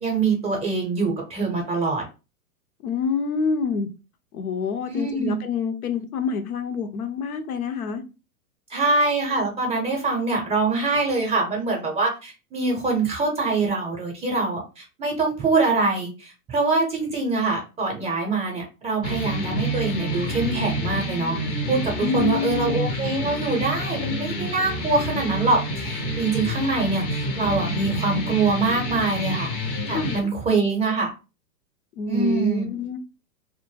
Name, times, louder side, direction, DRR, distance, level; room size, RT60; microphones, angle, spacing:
voice 1, 0.0-2.0 4.8-5.4 8.7-21.4 21.7-29.5 29.9-31.1 32.1-32.7, right 3 dB, 15° right, 0.6 m, -24 dB
voice 2, 2.8-3.9 4.3-8.0 22.0-22.7 29.9-30.3 32.0-33.0, left 5 dB, 75° left, 0.7 m, -27 dB
sound 1, 19.0-30.2, right 1 dB, 25° left, 0.5 m, -28 dB
2.1 x 2.1 x 3.2 m
hypercardioid pair, 115°, 45 cm